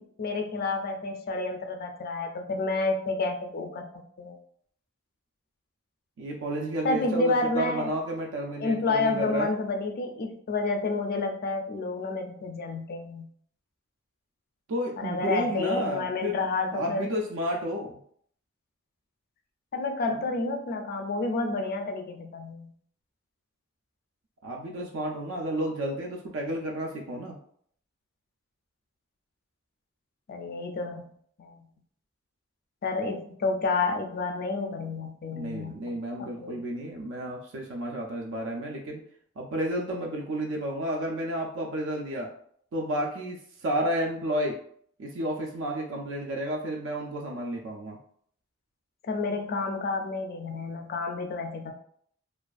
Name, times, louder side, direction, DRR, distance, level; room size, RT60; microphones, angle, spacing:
voice 1, 0.0-4.4 6.8-7.9 8.6-13.3 15.0-17.1 19.7-22.7 30.3-31.0 31.4-31.6 32.8-36.6 49.1-51.7, left 3 dB, 45° left, 4 dB, 0.4 m, -30 dB
voice 2, 6.2-9.5 14.7-16.4 16.7-18.0 24.4-27.4 35.3-39.0 39.4-42.3 42.7-44.6 45.0-48.0, right 1 dB, 65° right, 0 dB, 0.4 m, -31 dB
2.4 x 2.3 x 2.4 m, 0.62 s
head